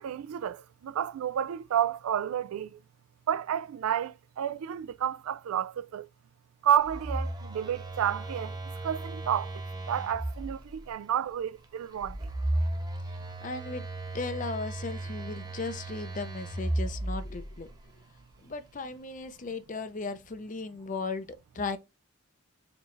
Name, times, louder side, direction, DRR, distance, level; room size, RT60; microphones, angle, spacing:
voice 1, 0.0-2.8 3.3-6.1 6.6-8.6 8.8-9.5 9.9-12.2, right 9 dB, 85° right, 0.3 m, -30 dB
Telephone, 6.8-10.8 12.0-17.7, right 1 dB, 20° right, 0.5 m, -35 dB
voice 2, 13.4-13.9 14.1-17.7 18.4-21.3 21.6-21.8, left 3 dB, 35° left, 0.5 m, -36 dB
4.5 x 3.1 x 2.5 m
head